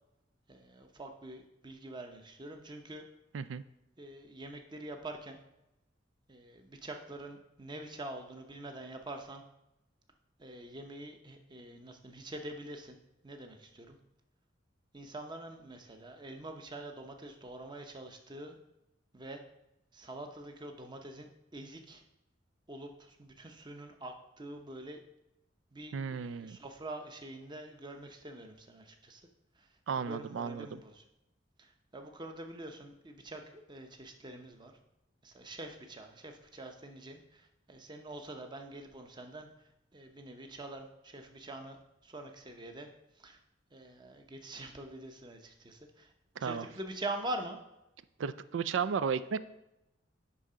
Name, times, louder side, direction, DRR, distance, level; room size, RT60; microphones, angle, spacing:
voice 1, 0.5-3.0 4.0-5.4 6.3-9.4 10.4-13.0 13.2-14.0 14.9-18.6 19.1-19.4 19.9-22.0 22.7-25.0 25.7-29.2 29.6-29.7 30.0-31.0 31.6-34.7 35.2-39.5 39.9-42.9 43.2-43.4 43.7-46.1 46.4-47.6, right 1 dB, 25° right, 5 dB, 0.8 m, -45 dB
voice 2, 25.9-26.6 29.9-30.7 46.4-46.7 48.2-49.4, right 6 dB, 75° right, 14 dB, 0.4 m, -34 dB
9.8 x 3.8 x 5.0 m, 0.91 s
head